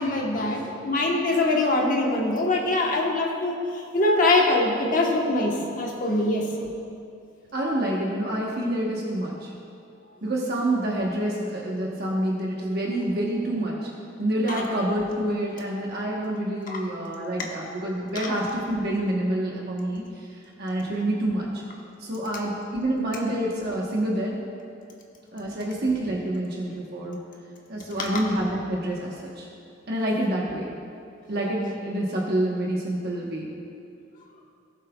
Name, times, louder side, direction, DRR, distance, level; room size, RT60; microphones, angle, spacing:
voice 1, 0.0-3.6 3.9-6.6 14.5-14.6 16.7-16.8 18.1-18.3 28.0-28.1, left 2 dB, 45° left, -1 dB, 1.2 m, -23 dB
voice 2, 7.5-9.5 10.2-13.9 14.2-21.6 22.0-24.4 25.3-27.2 27.7-29.5 29.9-30.7 31.3-33.5, right 1 dB, 55° right, -3 dB, 1.2 m, -27 dB
17.5 x 7.4 x 2.4 m, 2.5 s
head